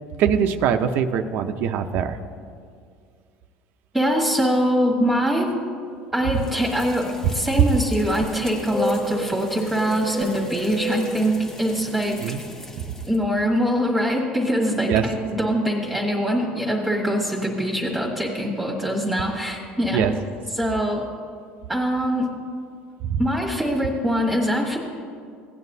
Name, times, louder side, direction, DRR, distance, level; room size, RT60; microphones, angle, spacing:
voice 1, 0.2-2.2 12.2-12.4 14.9-15.0 19.9-20.1 23.0-23.2, right 8 dB, 60° right, 8 dB, 0.6 m, -22 dB
voice 2, 3.9-5.5 6.1-12.2 13.1-20.1 20.5-21.1 21.7-22.4 23.2-24.8, equal, 5° right, -2 dB, 1.4 m, -23 dB
sound 1, 6.4-13.1, equal, 10° left, 0.7 m, -32 dB
17.0 x 9.1 x 2.7 m, 2.2 s
cardioid pair, 135°, 4 cm